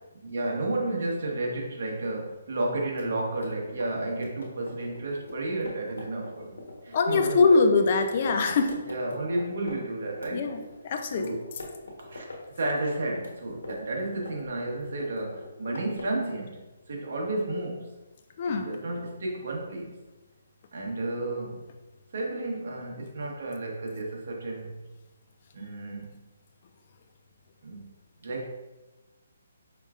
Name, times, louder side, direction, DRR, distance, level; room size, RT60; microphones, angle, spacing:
voice 1, 0.2-7.8 8.9-10.5 11.1-11.5 12.0-12.2 12.6-18.0 18.4-20.0 20.7-21.7 22.1-24.8 25.5-26.2 27.6-27.9 28.2-28.4, right 2 dB, 55° right, -1 dB, 1.2 m, -32 dB
sound 1, 2.9-9.7 10.1-11.2 11.4-12.4 12.7-14.5 14.8-16.2, left 2 dB, 90° left, 1.1 m, -43 dB
voice 2, 6.9-8.8 10.3-11.3 18.4-18.7, left 4 dB, 40° left, 5 dB, 0.5 m, -23 dB
5.4 x 3.4 x 2.5 m, 1.1 s
hypercardioid pair, 160°, 0 cm